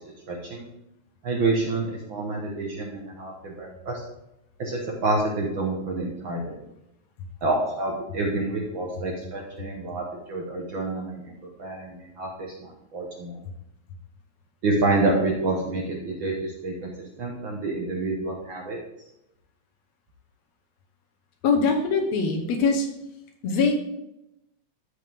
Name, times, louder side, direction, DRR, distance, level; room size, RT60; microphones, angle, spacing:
voice 1, 0.3-0.7 1.2-4.0 4.6-6.6 7.4-11.3 11.6-13.4 14.6-16.9 17.2-18.8, right 2 dB, 55° right, -1 dB, 1.5 m, -28 dB
voice 2, 21.4-22.9 23.4-23.8, left 4 dB, 70° left, 3 dB, 2.2 m, -22 dB
13.5 x 5.0 x 3.6 m, 0.84 s
omnidirectional pair, 3.4 m